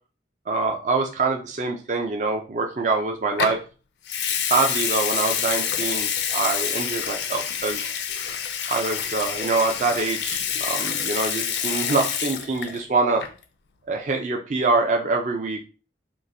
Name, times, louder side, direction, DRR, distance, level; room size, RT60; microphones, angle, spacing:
voice 1, 0.5-3.6 4.5-7.9 8.7-13.2 13.9-15.6, right 3 dB, 45° right, 3 dB, 0.4 m, -25 dB
Water tap faucet / Sink (filling or washing) / Liquid, 3.4-3.6 4.1-12.8 13.1-13.4, left 8 dB, 75° left, 0.4 m, -27 dB
3.7 x 2.4 x 2.6 m, 0.35 s
head